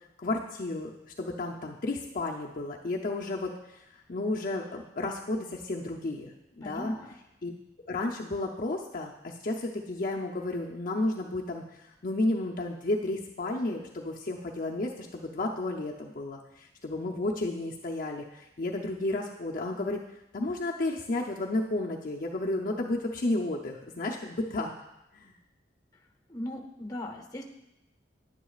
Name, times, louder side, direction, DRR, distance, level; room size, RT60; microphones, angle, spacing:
voice 1, 0.2-6.9 7.4-7.5 7.9-20.0 20.3-24.7 25.1-25.3, left 2 dB, 50° left, 0 dB, 0.6 m, -32 dB
voice 2, 6.6-7.2 26.3-27.4, left 1 dB, 20° left, 3 dB, 1.0 m, -38 dB
10.0 x 9.7 x 2.4 m, 0.88 s
head